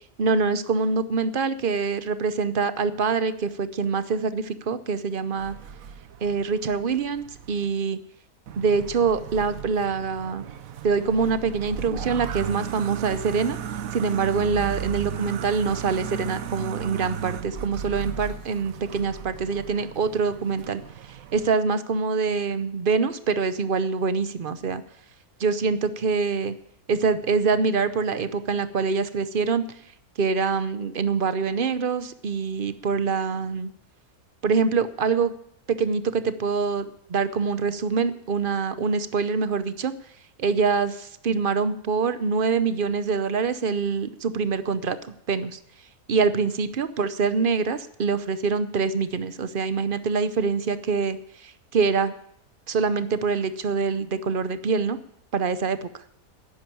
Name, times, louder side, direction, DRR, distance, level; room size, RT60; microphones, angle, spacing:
voice 1, 0.2-5.5 6.2-8.0 8.6-10.4 10.8-13.6 13.9-20.8 21.1-24.8 25.4-26.5 26.9-29.6 30.2-33.7 34.4-35.3 35.7-39.9 40.4-45.0 45.3-45.6 46.1-52.1 52.7-55.0 55.3-55.9, right 5 dB, 45° right, 13 dB, 0.7 m, -25 dB
sound 1, 5.4-7.7 8.5-21.5, right 8 dB, 65° right, 1.2 m, -35 dB
11.0 x 10.0 x 9.2 m, 0.71 s
omnidirectional pair, 1.6 m